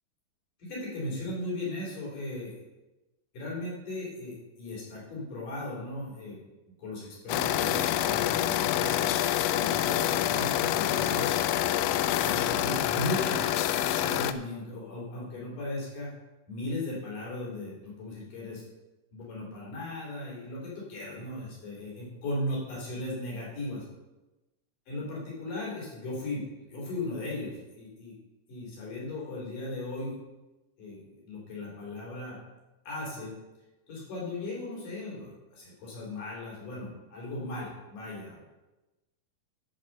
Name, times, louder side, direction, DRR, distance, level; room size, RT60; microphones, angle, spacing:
voice 1, 0.6-2.6 3.3-6.4 6.8-11.3 12.1-16.1 16.5-18.6 19.1-23.9 24.9-28.1 28.5-30.2 30.8-32.4 32.9-33.3 33.9-38.4, left 1 dB, 70° left, -4 dB, 5.2 m, -37 dB
sound 1, 7.3-14.3, left 12 dB, 90° left, 2.3 m, -27 dB
12.5 x 5.3 x 6.6 m, 1.1 s
omnidirectional pair, 3.9 m